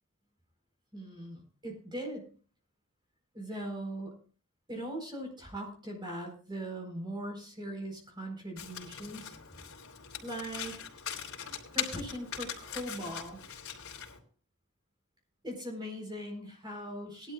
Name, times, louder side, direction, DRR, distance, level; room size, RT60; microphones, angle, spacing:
voice 1, 0.9-2.3 3.3-4.1 4.7-9.3 10.2-10.8 11.7-13.4 15.4-17.3, right 1 dB, 20° right, 1 dB, 4.4 m, -40 dB
Domestic sounds home sounds, 8.6-14.2, left 9 dB, 85° left, 3.2 m, -41 dB
20.0 x 11.5 x 2.4 m, 0.38 s
head